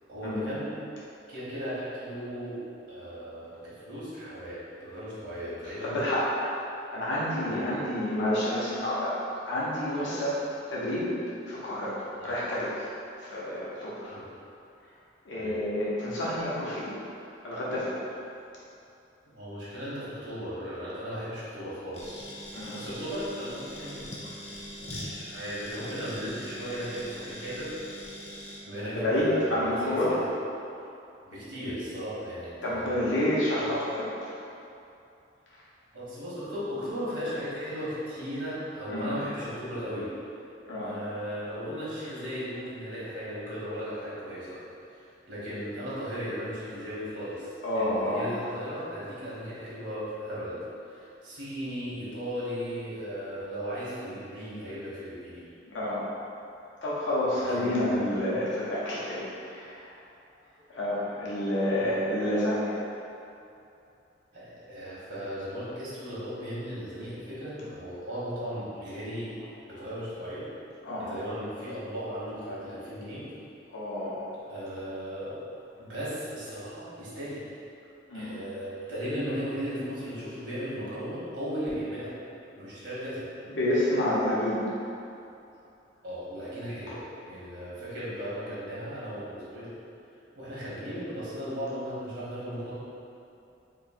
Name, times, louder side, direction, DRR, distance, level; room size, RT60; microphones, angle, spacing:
voice 1, 0.1-0.7 1.3-2.6 2.9-6.0 7.5-7.6 9.9-10.3 12.2-12.3 14.1-14.2 15.4-15.5 19.3-22.2 22.7-24.1 24.8-27.7 28.6-30.2 31.2-33.7 35.9-40.1 40.8-44.6 44.9-50.6 50.9-55.4 57.3-57.9 58.3-58.4 61.7-61.9 64.3-69.4 69.7-70.5 71.0-73.2 74.5-75.4 75.8-77.4 78.1-82.1 82.6-83.2 86.0-87.0 87.3-89.7 90.3-92.7, equal, 75° right, -9 dB, 1.2 m, -36 dB
voice 2, 5.8-6.6 6.9-10.3 10.7-11.1 11.5-12.0 12.2-12.9 13.2-14.1 15.3-16.9 17.4-17.9 22.5-22.7 28.9-30.1 32.6-34.3 38.9-39.1 40.7-40.9 47.6-48.2 55.7-56.0 56.8-59.9 60.7-62.8 70.8-71.1 73.7-74.3 78.1-78.3 83.5-84.7 86.9-87.0, left 1 dB, 85° left, -8 dB, 0.8 m, -29 dB
sound 1, 21.9-28.6, equal, 35° left, 0.6 m, -42 dB
3.0 x 2.7 x 4.1 m, 2.7 s
head